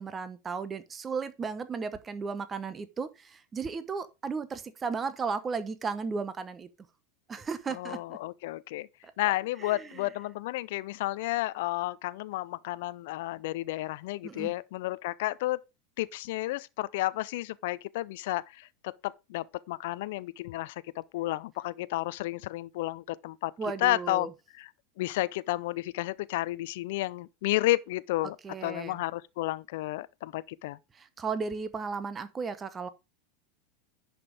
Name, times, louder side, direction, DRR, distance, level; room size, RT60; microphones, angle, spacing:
voice 1, 0.0-6.7 7.3-8.2 9.0-9.1 9.6-10.1 14.2-14.5 23.6-24.3 28.4-29.0 30.9-32.9, right 5 dB, 25° right, 1.0 m, -35 dB
voice 2, 7.8-8.9 9.2-15.6 16.0-18.7 19.0-23.5 23.8-24.3 24.6-24.7 25.0-28.4 28.6-30.8, left 17 dB, 60° left, 0.5 m, -32 dB
10.5 x 5.2 x 4.9 m
figure-of-eight pair, 85°, 0 cm